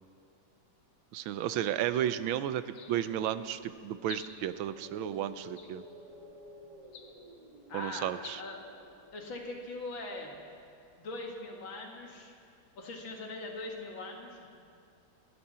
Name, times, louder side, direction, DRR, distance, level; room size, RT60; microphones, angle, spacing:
voice 1, 1.1-5.8 7.7-8.4, right 11 dB, 85° right, 13 dB, 1.5 m, -33 dB
sound 1, 2.6-10.7, equal, 55° right, 2.8 m, -54 dB
sound 2, 2.7-3.3 4.0-4.6 5.5-6.1 6.8-7.4 8.1-8.4, left 6 dB, 85° left, 2.0 m, -50 dB
voice 2, 7.7-8.1 8.4-8.6 9.1-10.3 11.0-12.3 12.8-14.5, left 2 dB, 70° left, 1 dB, 2.6 m, -41 dB
29.0 x 11.5 x 4.3 m, 2.4 s
omnidirectional pair, 2.2 m